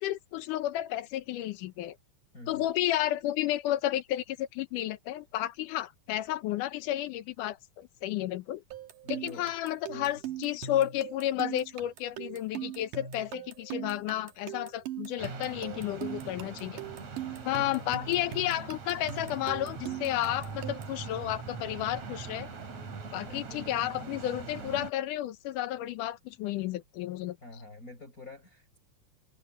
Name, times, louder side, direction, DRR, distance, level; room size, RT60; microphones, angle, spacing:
voice 1, 0.0-2.0 2.5-8.6 9.1-16.8 17.4-22.5 23.1-27.4, left 13 dB, 80° left, 2.4 m, -32 dB
sound 1, 8.7-21.0, right 10 dB, 85° right, 3.0 m, -40 dB
voice 2, 9.0-9.5 9.9-10.1 17.5-17.7 23.1-23.6 27.4-28.8, left 2 dB, 25° left, 6.0 m, -47 dB
sound 2, 15.2-24.9, right 4 dB, 60° right, 4.6 m, -42 dB
omnidirectional pair, 3.6 m